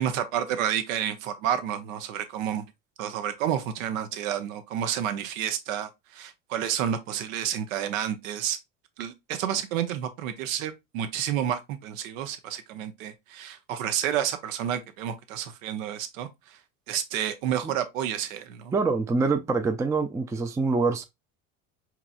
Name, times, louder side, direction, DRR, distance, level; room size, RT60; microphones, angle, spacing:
voice 1, 0.0-2.6 3.0-8.6 9.0-16.6 16.9-18.7, right 10 dB, 80° right, 0.7 m, -30 dB
voice 2, 18.7-21.0, right 4 dB, 10° right, 0.4 m, -25 dB
4.7 x 2.9 x 2.3 m
hypercardioid pair, 80°, 39 cm